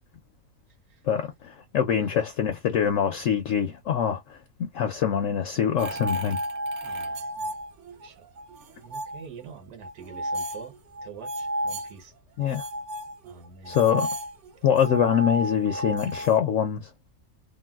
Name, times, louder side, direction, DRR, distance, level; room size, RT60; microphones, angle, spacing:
voice 1, 1.1-4.4 4.7-6.4 12.4-12.7 13.7-14.1 14.6-16.9, left 8 dB, 65° left, 0.8 m, -24 dB
sound 1, 5.8-8.1 8.4-9.3 9.8-11.9 12.4-16.4, right 1 dB, 60° right, 0.8 m, -33 dB
voice 2, 6.8-7.6 8.0-8.3 8.8-10.7 11.0-12.1 13.2-13.8, right 6 dB, 85° right, 1.6 m, -46 dB
3.8 x 2.2 x 2.3 m
omnidirectional pair, 1.6 m